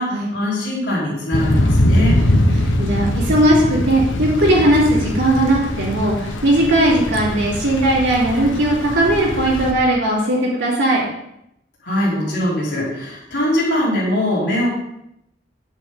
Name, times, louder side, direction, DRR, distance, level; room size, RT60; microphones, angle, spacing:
voice 1, 0.0-2.2 11.8-14.7, left 1 dB, 70° left, -6 dB, 4.0 m, -21 dB
Thunder / Rain, 1.3-9.7, left 1 dB, 90° left, 1.1 m, -21 dB
voice 2, 2.1-11.0, right 1 dB, 85° right, -9 dB, 3.0 m, -18 dB
9.7 x 8.7 x 3.8 m, 0.80 s
head